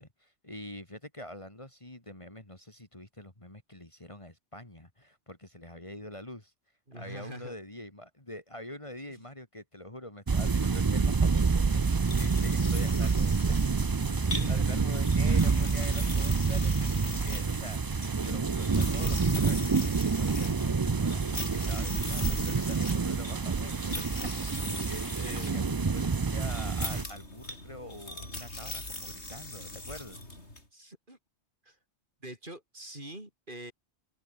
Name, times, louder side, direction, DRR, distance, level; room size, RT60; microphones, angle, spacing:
voice 1, 0.0-6.5 6.9-13.6 14.3-24.1 24.8-25.6 25.9-30.2, left 1 dB, 25° left, 3.5 m, -45 dB
voice 2, 6.9-7.5 9.1-9.2 14.2-14.8 25.1-25.6 30.7-31.2 31.6-31.8 32.2-33.7, right 1 dB, 45° right, 6.8 m, -45 dB
sound 1, 10.3-27.0, right 4 dB, 30° right, 0.4 m, -27 dB
sound 2, 11.8-30.6, left 2 dB, 75° left, 6.9 m, -41 dB
omnidirectional pair, 1.2 m